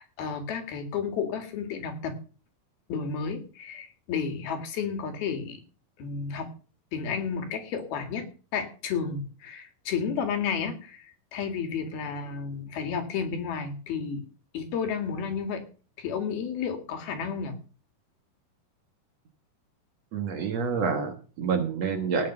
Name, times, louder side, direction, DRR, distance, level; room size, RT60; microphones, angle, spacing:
voice 1, 0.0-2.2 2.9-5.6 6.0-6.5 6.9-8.3 8.5-14.2 14.5-15.6 16.0-17.6, left 6 dB, 85° left, 5 dB, 4.1 m, -32 dB
voice 2, 20.1-22.3, right 5 dB, 55° right, 5 dB, 2.2 m, -28 dB
17.5 x 6.6 x 6.8 m, 0.38 s
omnidirectional pair, 4.2 m